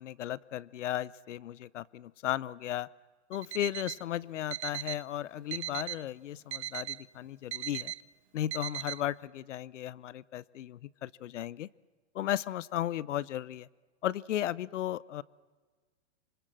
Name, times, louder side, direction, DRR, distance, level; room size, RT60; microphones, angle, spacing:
voice 1, 0.0-2.9 3.3-7.9 8.3-11.7 12.1-13.7 14.0-15.2, left 12 dB, 90° left, 21 dB, 0.7 m, -35 dB
Alarm, 3.3-4.0 4.5-5.0 5.5-6.0 6.5-7.0 7.5-8.0 8.5-9.0, right 13 dB, 70° right, 0.8 m, -38 dB
26.0 x 26.0 x 7.6 m, 1.5 s
hypercardioid pair, 165°, 35 cm